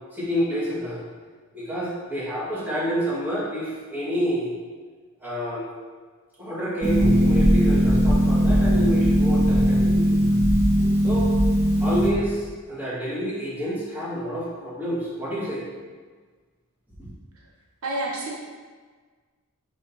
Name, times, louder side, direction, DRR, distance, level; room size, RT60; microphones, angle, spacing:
voice 1, 0.1-1.0 1.5-4.5 5.2-5.7 6.4-10.2 11.0-11.3 11.8-15.6, equal, 10° right, -10 dB, 1.9 m, -28 dB
Harp, 6.8-12.1, equal, 10° left, 1.6 m, -19 dB
voice 2, 17.8-18.3, right 1 dB, 80° right, -1 dB, 0.9 m, -28 dB
5.1 x 3.7 x 5.6 m, 1.5 s
head